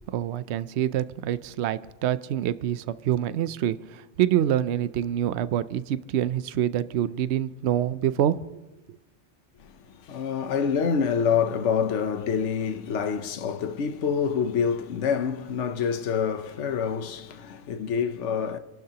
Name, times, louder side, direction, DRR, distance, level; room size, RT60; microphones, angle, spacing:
voice 1, 0.1-8.6 8.9-9.0, right 11 dB, 70° right, 0.9 m, -26 dB
voice 2, 9.6-18.6, left 7 dB, 75° left, 1.1 m, -27 dB
28.0 x 12.0 x 2.9 m
omnidirectional pair, 1.2 m